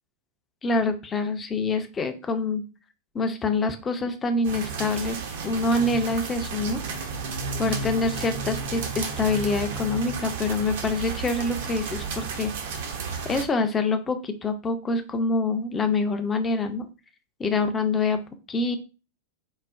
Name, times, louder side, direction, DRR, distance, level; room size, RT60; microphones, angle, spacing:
voice 1, 0.6-2.6 3.1-6.8 7.6-12.8 13.2-16.9 17.4-18.2 18.5-18.8, left 3 dB, 20° left, 8 dB, 0.5 m, -26 dB
sound 1, 4.4-13.5, right 5 dB, 55° right, 0.6 m, -32 dB
3.9 x 2.0 x 2.4 m, 0.32 s
figure-of-eight pair, 90°, 0 cm